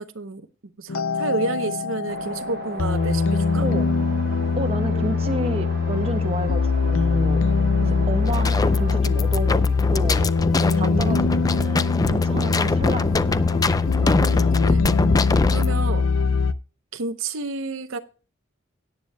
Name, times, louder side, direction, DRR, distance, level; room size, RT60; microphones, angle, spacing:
voice 1, 0.0-3.6 7.8-8.1 10.6-11.4 14.0-14.8 15.5-16.1 16.9-18.0, right 3 dB, 80° right, 9 dB, 0.8 m, -31 dB
sound 1, 0.9-16.5, left 4 dB, 85° left, 0.5 m, -22 dB
sound 2, 2.1-9.0, right 4 dB, 50° right, 1.1 m, -37 dB
voice 2, 3.6-3.9 4.6-7.4 7.9-10.3 10.8-13.2 15.9-16.1, right 2 dB, 30° right, 6 dB, 1.3 m, -31 dB
sound 3, 8.3-15.7, left 2 dB, 20° left, 0.4 m, -24 dB
17.5 x 9.5 x 2.2 m, 0.36 s
head